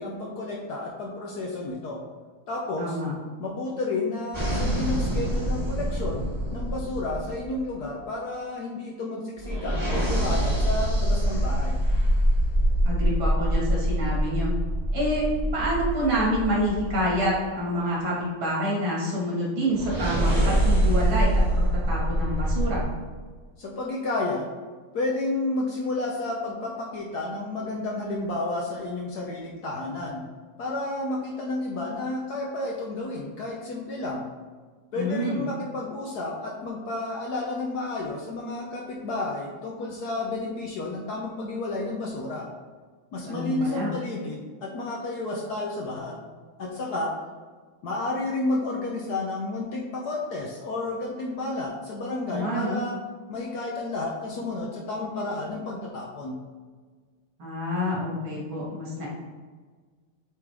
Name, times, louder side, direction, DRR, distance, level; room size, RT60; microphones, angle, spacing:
voice 1, 0.0-2.0 2.5-3.0 3.4-11.8 23.6-24.5 24.9-30.2 30.6-34.3 34.9-42.5 43.1-46.2 46.6-47.2 47.8-53.0 53.3-56.4, left 2 dB, 65° left, -2 dB, 1.1 m, -31 dB
voice 2, 2.8-3.1 12.9-14.5 14.9-21.4 21.9-22.9 34.9-35.4 43.3-43.9 52.3-52.8 57.4-59.1, equal, 70° right, -4 dB, 2.5 m, -27 dB
sound 1, 4.3-7.8 9.4-17.4 19.7-22.8, equal, 15° right, 1.0 m, -25 dB
7.7 x 3.6 x 3.4 m, 1.5 s
omnidirectional pair, 2.3 m